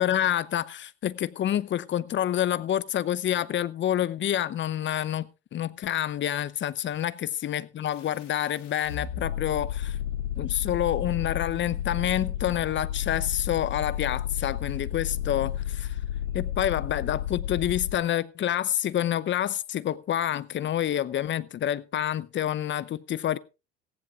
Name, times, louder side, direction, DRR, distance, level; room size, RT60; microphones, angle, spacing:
voice 1, 0.0-10.0 10.4-16.0 16.3-23.4, left 11 dB, 30° left, 0.7 m, -28 dB
sound 1, 7.9-18.0, left 11 dB, 90° left, 2.5 m, -32 dB
17.5 x 15.0 x 2.4 m
hypercardioid pair, 80°, 36 cm